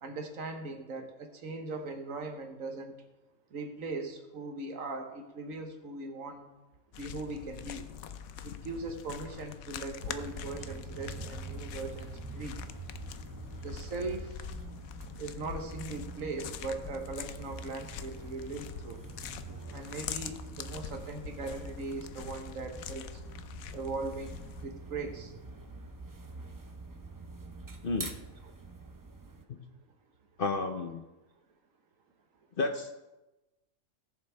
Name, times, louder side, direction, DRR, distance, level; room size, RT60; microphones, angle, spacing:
voice 1, 0.0-2.9 3.5-6.4 7.0-7.9 8.4-12.6 13.6-14.4 15.2-19.0 19.7-23.2 23.7-25.3 28.4-28.5, right 3 dB, 70° right, 5 dB, 1.5 m, -39 dB
sound 1, 6.9-24.6, left 9 dB, 80° left, 1.1 m, -44 dB
sound 2, 10.0-29.4, right 3 dB, 25° right, 0.4 m, -45 dB
voice 2, 30.4-31.0 32.6-32.9, left 3 dB, 50° left, 5 dB, 0.8 m, -31 dB
18.5 x 7.0 x 3.4 m, 1.0 s
omnidirectional pair, 1.5 m